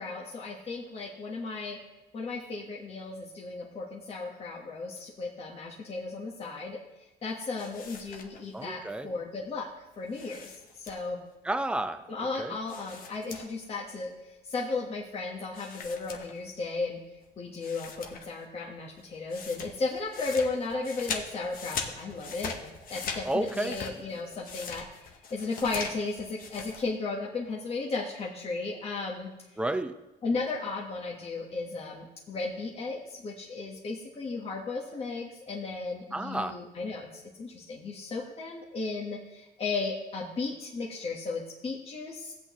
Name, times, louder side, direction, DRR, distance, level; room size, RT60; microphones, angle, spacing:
voice 1, 0.0-1.8 2.1-6.8 7.2-9.7 10.0-11.2 12.1-17.0 17.4-24.9 25.3-29.3 30.2-42.3, left 3 dB, 35° left, -3 dB, 1.3 m, -35 dB
sound 1, 7.6-8.6 10.1-11.3 12.7-13.8 14.0-14.1 15.5-16.7 17.2-17.3 17.6-18.4 18.7-26.8, left 5 dB, 60° left, 1.2 m, -41 dB
voice 2, 8.5-9.1 11.4-12.0 12.4-12.5 23.3-23.8 29.6-29.9 36.1-36.6, right 1 dB, 5° right, 9 dB, 0.6 m, -31 dB
15.5 x 8.3 x 3.1 m, 1.0 s
cardioid pair, 110°, 17 cm